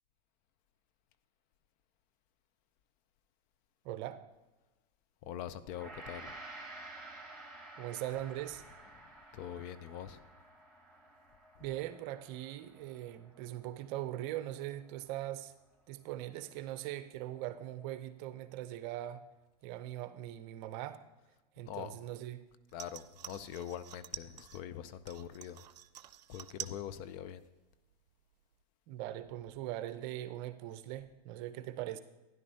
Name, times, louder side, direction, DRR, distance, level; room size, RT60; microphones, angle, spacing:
voice 1, 3.8-4.2 7.8-8.6 11.6-15.5 15.9-19.2 19.6-21.0 21.6-22.4 28.9-32.0, right 13 dB, 45° right, 0.7 m, -41 dB
voice 2, 5.2-6.4 8.9-10.3 11.6-11.8 21.6-22.0 22.7-25.6 26.3-27.4, left 10 dB, 40° left, 0.5 m, -44 dB
Gong, 5.7-15.1, right 2 dB, 15° left, 3.8 m, -52 dB
sound 1, 22.7-24.7 25.1-26.9 27.1-27.7 28.1-28.2, right 11 dB, 80° right, 0.5 m, -47 dB
12.5 x 10.5 x 2.8 m
hypercardioid pair, 120°, 21 cm